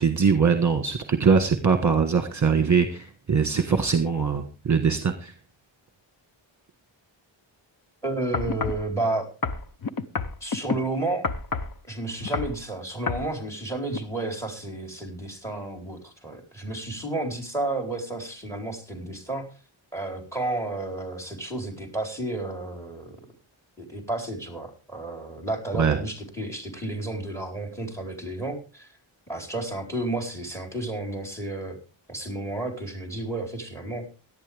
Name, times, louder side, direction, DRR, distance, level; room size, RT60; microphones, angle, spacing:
voice 1, 0.0-5.3 25.8-26.0, right 5 dB, 35° right, 7 dB, 1.4 m, -22 dB
voice 2, 8.0-9.3 10.4-11.3 11.8-19.5 19.9-23.1 23.8-28.9 29.3-31.8 32.1-34.0, right 2 dB, 5° left, 5 dB, 4.2 m, -31 dB
sound 1, 8.3-8.8 9.4-10.8 11.2-11.8 12.2-12.6 13.1-13.3 13.9-14.0, left 4 dB, 45° left, 0.9 m, -28 dB
17.5 x 11.5 x 3.4 m, 0.32 s
wide cardioid pair, 130°, 48 cm